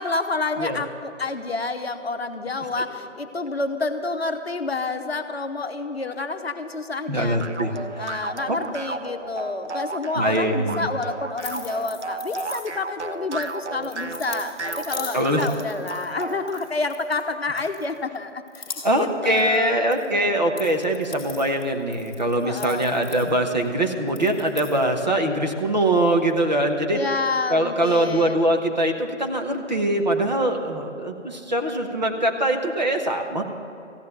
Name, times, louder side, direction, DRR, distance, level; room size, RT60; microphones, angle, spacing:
voice 1, 0.0-7.4 8.0-20.0 22.4-22.9 26.9-28.5, left 3 dB, 55° left, 7 dB, 0.9 m, -29 dB
voice 2, 7.1-8.1 8.5-8.6 10.1-10.9 15.1-15.4 18.8-27.0 27.5-33.4, right 1 dB, 35° right, 3 dB, 1.0 m, -23 dB
sound 1, 7.4-16.7, right 3 dB, 65° right, 0.9 m, -34 dB
sound 2, 11.4-13.0 13.4-17.2 17.6-18.2 18.5-19.1 19.4-20.0 20.3-23.7 24.1-24.8, left 4 dB, 30° left, 2.1 m, -40 dB
15.0 x 9.5 x 6.7 m, 2.7 s
figure-of-eight pair, 170°, 38 cm